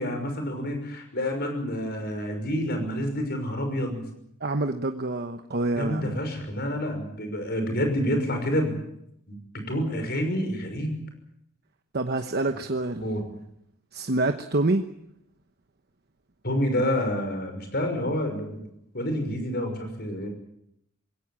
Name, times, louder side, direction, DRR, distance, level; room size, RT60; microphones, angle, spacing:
voice 1, 0.0-4.0 5.8-8.8 9.3-11.0 13.0-13.2 16.4-18.7 18.9-20.3, equal, 50° left, 6 dB, 5.9 m, -28 dB
voice 2, 4.4-6.2 11.9-13.1 13.9-14.8, right 2 dB, 50° right, 7 dB, 1.1 m, -27 dB
21.5 x 17.5 x 8.7 m, 0.77 s
head